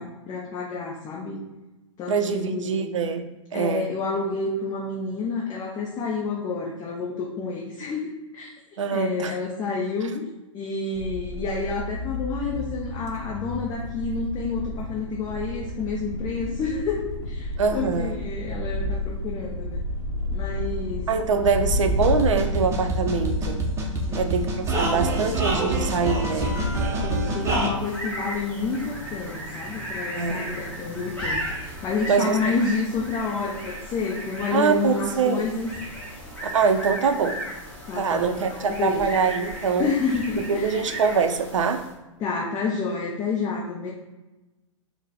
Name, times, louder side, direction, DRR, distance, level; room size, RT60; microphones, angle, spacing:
voice 1, 0.0-1.4 2.0-2.8 3.5-8.5 8.9-19.8 20.3-21.1 24.1-24.4 27.0-35.7 37.9-39.2 39.8-40.9 42.2-43.9, left 4 dB, 25° left, -2 dB, 0.5 m, -29 dB
voice 2, 2.1-3.3 3.5-3.9 8.8-9.3 17.6-18.2 21.1-23.6 24.1-26.5 30.1-30.5 32.1-32.5 34.5-35.5 36.5-37.4 37.9-39.9 40.5-41.8, right 5 dB, 70° right, 7 dB, 0.5 m, -24 dB
sound 1, 10.9-27.6, left 2 dB, 60° left, 0.7 m, -31 dB
sound 2, 21.9-27.7, right 2 dB, 15° right, 0.7 m, -26 dB
sound 3, 27.7-42.0, equal, 10° left, 1.1 m, -36 dB
4.0 x 2.2 x 4.0 m, 1.1 s
hypercardioid pair, 115°, 16 cm